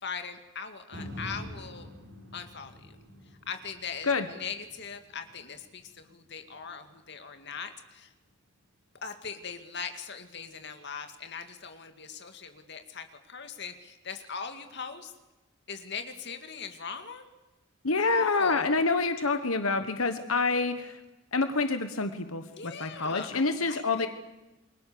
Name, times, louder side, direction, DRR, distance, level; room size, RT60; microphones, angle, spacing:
voice 1, 0.0-1.9 2.3-3.0 3.5-8.1 9.0-15.1 15.7-17.2 17.9-18.7 22.5-24.1, left 6 dB, 55° left, 7 dB, 2.2 m, -40 dB
sound 1, 0.9-9.1 9.6-9.7, left 1 dB, 55° right, 4.1 m, -47 dB
voice 2, 17.8-21.0 21.3-24.1, left 3 dB, 80° left, 9 dB, 1.4 m, -27 dB
29.0 x 22.5 x 6.9 m, 1.0 s
head